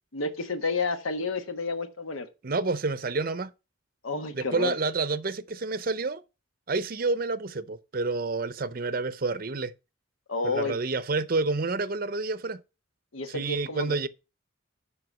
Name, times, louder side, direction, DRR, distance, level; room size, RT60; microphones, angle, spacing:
voice 1, 0.1-2.3 4.0-4.7 10.3-10.8 13.1-14.0, left 3 dB, 90° left, 1.2 m, -30 dB
voice 2, 2.4-3.5 4.3-6.2 6.7-9.7 10.4-12.6 13.3-14.1, right 3 dB, 45° right, 0.6 m, -29 dB
7.8 x 5.7 x 5.7 m
head